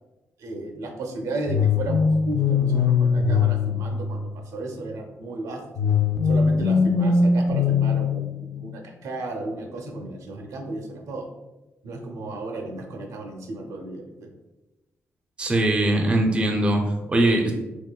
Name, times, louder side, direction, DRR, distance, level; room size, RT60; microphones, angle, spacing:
voice 1, 0.4-5.6 6.2-11.3 11.8-14.3, right 2 dB, 85° right, 3 dB, 0.5 m, -34 dB
sound 1, 1.5-4.6 5.8-8.7, left 5 dB, 90° left, 0.4 m, -21 dB
voice 2, 15.4-17.5, right 1 dB, 20° right, 2 dB, 0.4 m, -21 dB
3.6 x 2.9 x 2.3 m, 1.1 s
wide cardioid pair, 160°, 5 cm